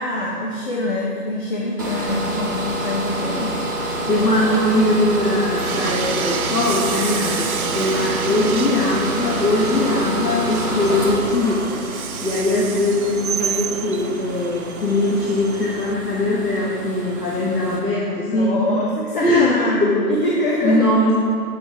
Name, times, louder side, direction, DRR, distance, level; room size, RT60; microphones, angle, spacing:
voice 1, 0.0-3.6 4.1-4.6 18.2-20.9, left 1 dB, 30° left, -3 dB, 1.0 m, -24 dB
sound 1, 1.8-17.8, right 1 dB, 15° right, 0.7 m, -27 dB
voice 2, 4.1-11.6 12.2-18.5 19.2-20.2 20.6-21.1, left 1 dB, 75° left, -6 dB, 2.0 m, -21 dB
Train, 5.6-15.9, right 7 dB, 60° right, 0.6 m, -30 dB
8.2 x 7.0 x 4.8 m, 2.3 s
figure-of-eight pair, 155°, 48 cm